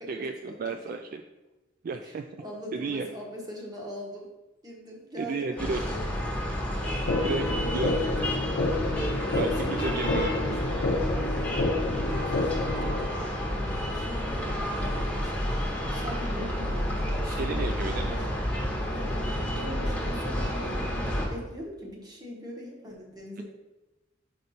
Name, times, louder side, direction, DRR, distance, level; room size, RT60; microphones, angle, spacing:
voice 1, 0.1-1.2 1.8-2.4 2.7-3.1 5.2-5.9 7.2-8.1 9.3-10.3 16.3-16.5 17.2-18.2 23.4-23.5, right 4 dB, 50° right, 6 dB, 0.3 m, -33 dB
voice 2, 2.0-4.3 4.6-6.0 6.7-8.3 9.0-10.0 10.3-10.6 11.1-13.5 13.8-15.6 15.9-18.3 18.9-23.4, equal, 20° right, -2 dB, 1.3 m, -42 dB
sound 1, 5.6-21.3, equal, 5° left, 1.3 m, -30 dB
sound 2, 7.1-13.1, left 2 dB, 60° left, 0.6 m, -29 dB
5.3 x 5.2 x 4.3 m, 1.1 s
head